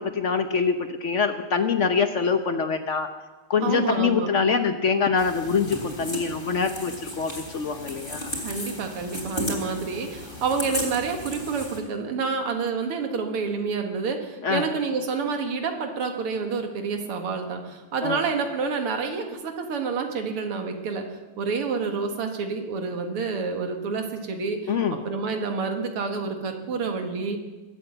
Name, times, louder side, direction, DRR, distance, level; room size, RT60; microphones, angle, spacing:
voice 1, 0.0-3.1 3.5-8.3 14.4-14.6 18.0-18.2 24.7-25.0, left 5 dB, 65° left, 8 dB, 0.7 m, -24 dB
voice 2, 3.6-4.3 8.4-21.0 21.4-27.4, right 5 dB, 85° right, 4 dB, 2.6 m, -28 dB
sound 1, 5.2-11.8, left 1 dB, 20° left, 3.5 m, -35 dB
22.0 x 8.3 x 7.9 m, 1.2 s
omnidirectional pair, 2.4 m